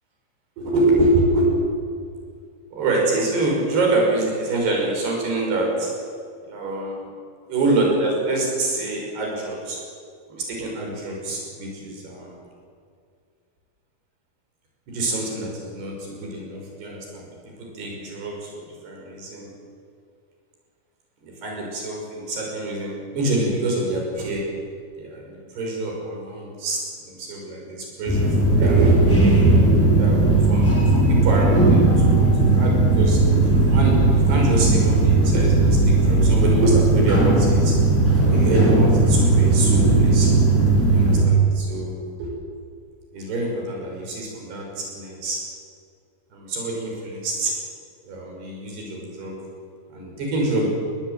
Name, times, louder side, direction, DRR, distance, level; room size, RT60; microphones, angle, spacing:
voice 1, 0.6-1.5 2.7-5.9 6.5-7.0 7.5-9.8 10.3-12.4 14.9-17.3 17.6-19.5 21.2-24.4 25.0-26.8 27.1-33.2 33.7-37.7 38.2-40.3 40.9-42.3 43.1-45.4 46.3-47.5 48.0-49.4 49.9-50.7, right 2 dB, 80° right, -1 dB, 8.2 m, -25 dB
sound 1, 28.1-41.2, right 2 dB, 5° left, 4.8 m, -17 dB
21.5 x 20.0 x 9.2 m, 2.3 s
omnidirectional pair, 4.6 m